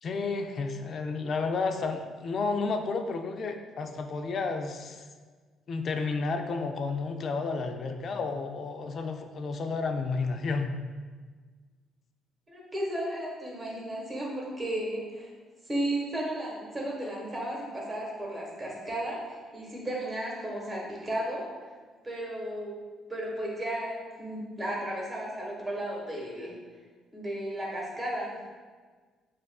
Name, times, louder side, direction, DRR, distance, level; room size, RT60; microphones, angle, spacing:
voice 1, 0.0-5.1 5.7-10.7, left 4 dB, 50° left, 6 dB, 0.4 m, -31 dB
voice 2, 12.5-15.3 15.6-21.7 22.0-22.7 23.1-26.5 27.1-28.4, right 1 dB, 20° right, -3 dB, 1.2 m, -34 dB
6.6 x 2.5 x 2.3 m, 1.5 s
cardioid pair, 110°, 0 cm